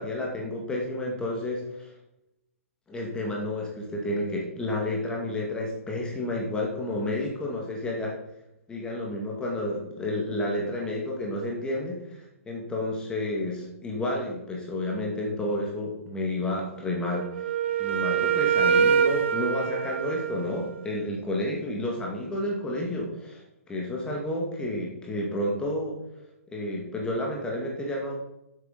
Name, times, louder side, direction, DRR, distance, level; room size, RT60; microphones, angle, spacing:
voice 1, 0.0-1.9 2.9-8.2 8.7-12.0 12.5-17.3 17.8-23.4 23.7-26.0 26.5-28.2, left 1 dB, 10° left, -2 dB, 2.2 m, -30 dB
Wind instrument woodwind instrument, 17.1-21.0, right 7 dB, 55° right, 0.8 m, -25 dB
11.5 x 8.1 x 4.2 m, 0.86 s
figure-of-eight pair, 120°, 8 cm